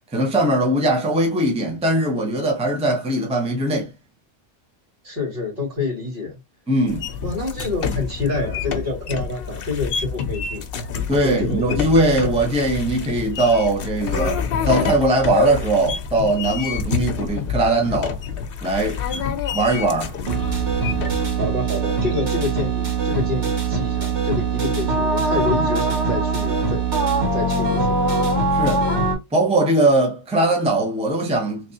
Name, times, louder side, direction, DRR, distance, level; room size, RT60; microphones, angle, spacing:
voice 1, 0.1-3.9 6.7-7.1 11.1-18.2 18.6-19.3 19.5-20.1 28.5-28.9 29.3-31.6, right 1 dB, 5° right, 0.7 m, -20 dB
voice 2, 5.0-6.4 7.2-10.7 11.2-11.8 21.4-28.0, left 3 dB, 60° right, 2.4 m, -28 dB
sound 1, 6.9-21.3, left 6 dB, 60° left, 0.8 m, -27 dB
sound 2, 20.3-29.1, right 3 dB, 85° right, 1.8 m, -22 dB
3.3 x 3.2 x 2.7 m
omnidirectional pair, 1.1 m